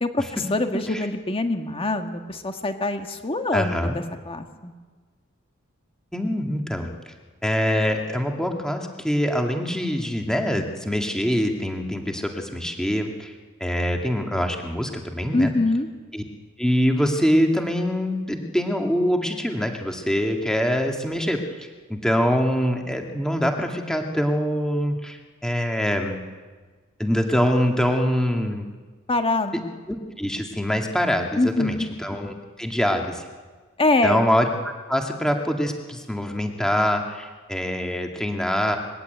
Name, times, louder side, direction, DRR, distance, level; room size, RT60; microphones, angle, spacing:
voice 1, 0.0-4.7 15.3-15.9 29.1-29.6 31.4-31.9 33.8-34.2, left 2 dB, 25° left, 6 dB, 1.6 m, -24 dB
voice 2, 3.5-4.0 6.1-6.9 7.4-13.3 13.6-15.5 16.1-16.2 16.6-26.2 27.0-28.7 29.9-33.2 34.0-38.8, equal, 5° left, 3 dB, 2.1 m, -24 dB
22.0 x 16.0 x 9.3 m, 1.4 s
head